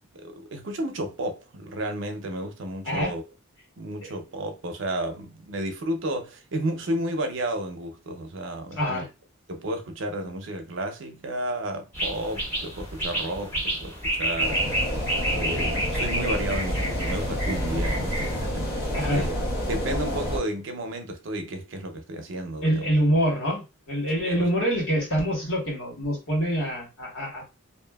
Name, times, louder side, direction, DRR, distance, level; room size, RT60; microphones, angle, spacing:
voice 1, 0.1-3.2 3.8-9.1 9.5-14.6 15.3-19.3 19.6-22.9 24.2-24.5, right 1 dB, 65° right, 0.5 m, -32 dB
voice 2, 8.7-9.1 18.9-19.3 22.6-27.4, equal, 85° left, 1.5 m, -25 dB
sound 1, 11.9-18.5, right 1 dB, 10° left, 1.1 m, -30 dB
sound 2, 14.4-20.4, equal, 50° left, 1.0 m, -29 dB
2.6 x 2.6 x 2.3 m
head